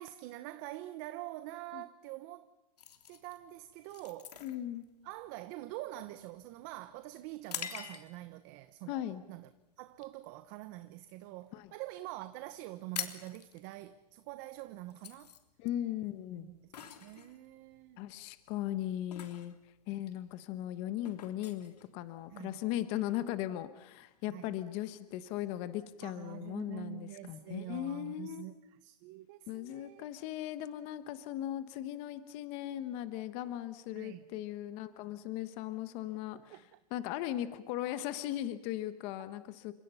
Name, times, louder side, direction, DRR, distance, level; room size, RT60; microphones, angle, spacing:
voice 1, 0.0-2.5 3.1-4.3 5.0-9.5 9.8-15.3 16.4-18.0 22.3-22.6 24.3-24.6 26.0-28.5 28.8-30.1 33.9-34.2 36.5-36.7, right 16 dB, 30° right, 1.0 m, -45 dB
sound 1, 2.8-8.4 8.9-9.1 9.7-10.0 10.3-11.5 11.8-11.9 12.1-12.2 12.5-22.5, left 8 dB, 75° left, 3.4 m, -46 dB
voice 2, 4.4-4.8 8.9-9.2 11.5-11.7 15.6-16.5 18.0-19.5 19.9-28.4 29.5-36.6 36.9-39.7, left 13 dB, 30° left, 1.2 m, -38 dB
30.0 x 27.0 x 5.7 m
hypercardioid pair, 160°, 21 cm